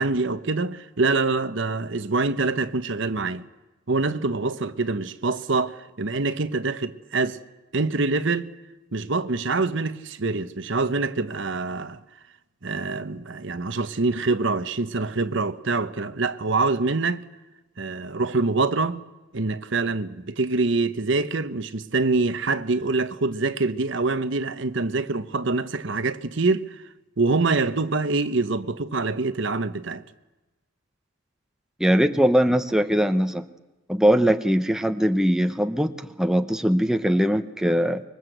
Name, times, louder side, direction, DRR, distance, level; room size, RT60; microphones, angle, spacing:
voice 1, 0.0-3.4 3.9-7.4 7.7-8.5 8.9-12.0 12.6-17.2 17.8-19.0 19.3-26.8 27.2-30.0, right 3 dB, 65° right, 1.0 m, -25 dB
voice 2, 31.8-33.4 33.9-38.0, equal, 5° right, 0.9 m, -21 dB
25.5 x 23.0 x 8.0 m
head